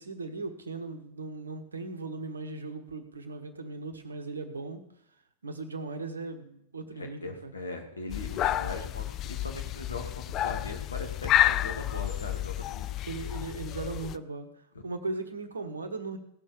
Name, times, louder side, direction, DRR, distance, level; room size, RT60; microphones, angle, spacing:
voice 1, 0.0-4.8 5.4-7.5 13.0-14.5 14.8-16.2, right 3 dB, 75° right, 7 dB, 1.3 m, -38 dB
voice 2, 7.0-12.9, left 2 dB, 75° left, 2 dB, 2.3 m, -40 dB
sound 1, 8.1-14.2, left 13 dB, 35° left, 0.4 m, -30 dB
17.0 x 6.5 x 6.8 m, 0.75 s
figure-of-eight pair, 90°, 0 cm